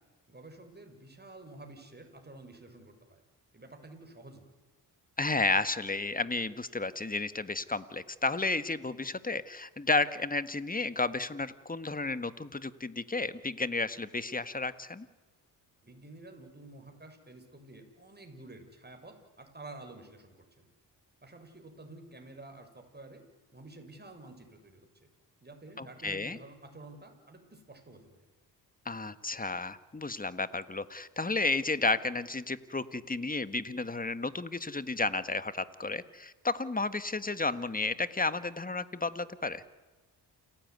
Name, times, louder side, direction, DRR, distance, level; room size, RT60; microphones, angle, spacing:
voice 1, 0.3-3.2 3.5-4.5 15.8-20.7 21.2-23.2 23.5-24.9 25.4-28.3, right 2 dB, 25° right, 5 dB, 6.6 m, -50 dB
voice 2, 5.2-15.1 25.8-26.4 28.8-39.6, left 3 dB, 20° left, 13 dB, 1.6 m, -32 dB
29.0 x 16.5 x 9.6 m, 1.3 s
cardioid pair, 65°, 43 cm